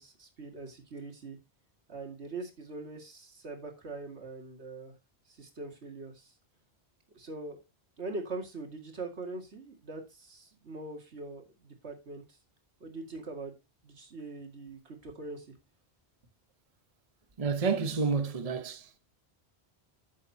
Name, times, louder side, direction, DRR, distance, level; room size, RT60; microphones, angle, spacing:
voice 1, 0.0-1.4 1.9-5.0 5.3-6.3 7.1-7.6 8.0-12.4 12.8-13.6 13.8-15.5, right 3 dB, 80° right, 2.4 m, -42 dB
voice 2, 17.4-19.0, right 5 dB, 35° right, 0.9 m, -30 dB
11.5 x 7.5 x 2.8 m
omnidirectional pair, 1.1 m